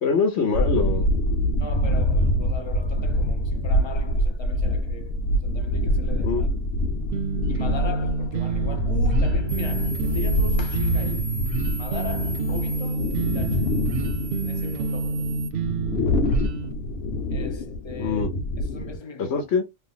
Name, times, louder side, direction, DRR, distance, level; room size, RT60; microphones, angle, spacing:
voice 1, 0.0-1.1 6.2-6.5 17.9-18.3 19.2-19.6, left 5 dB, 75° left, 1.0 m, -24 dB
sound 1, 0.5-19.0, equal, 60° left, 0.9 m, -25 dB
voice 2, 1.6-6.5 7.5-11.3 11.8-13.8 14.4-15.3 17.3-18.3 18.6-19.5, left 4 dB, 35° left, 0.5 m, -38 dB
sound 2, 7.1-16.7, right 4 dB, 60° right, 0.7 m, -28 dB
sound 3, 9.5-15.5, right 3 dB, 35° right, 0.4 m, -39 dB
3.3 x 2.0 x 3.8 m
omnidirectional pair, 1.2 m